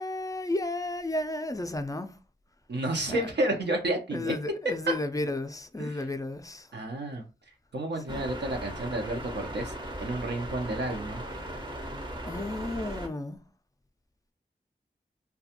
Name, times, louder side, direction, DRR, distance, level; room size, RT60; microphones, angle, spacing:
voice 1, 0.0-2.2 3.1-3.3 4.1-6.7 8.1-8.3 12.2-13.4, left 2 dB, 20° left, 0.4 m, -33 dB
voice 2, 2.7-4.3 5.8-6.0 6.7-7.3 7.7-9.7 10.0-11.2, right 1 dB, 70° right, 0.6 m, -31 dB
sound 1, 8.1-13.1, right 1 dB, 25° right, 0.6 m, -38 dB
2.4 x 2.2 x 2.8 m
cardioid pair, 40°, 18 cm